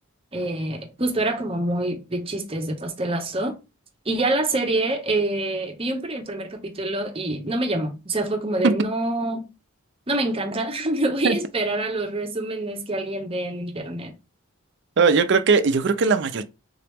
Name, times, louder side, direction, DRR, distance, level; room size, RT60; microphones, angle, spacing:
voice 1, 0.3-3.5 4.1-9.5 10.1-14.1, right 2 dB, 25° right, 0.7 m, -26 dB
voice 2, 15.0-16.4, right 4 dB, 55° right, 0.4 m, -19 dB
3.9 x 2.9 x 3.4 m
head